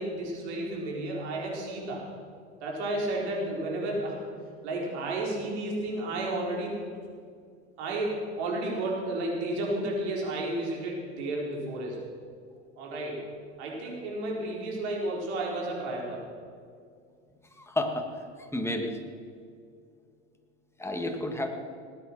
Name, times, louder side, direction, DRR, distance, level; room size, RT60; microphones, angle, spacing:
voice 1, 0.0-2.0 2.6-4.2 4.6-6.8 7.8-12.0 12.8-13.2 13.6-16.2, right 1 dB, 70° right, -2 dB, 4.5 m, -32 dB
voice 2, 17.6-18.1 18.4-19.0 20.8-21.5, left 1 dB, 5° left, 4 dB, 2.0 m, -31 dB
19.0 x 9.2 x 6.0 m, 2.2 s
hypercardioid pair, 85°, 35 cm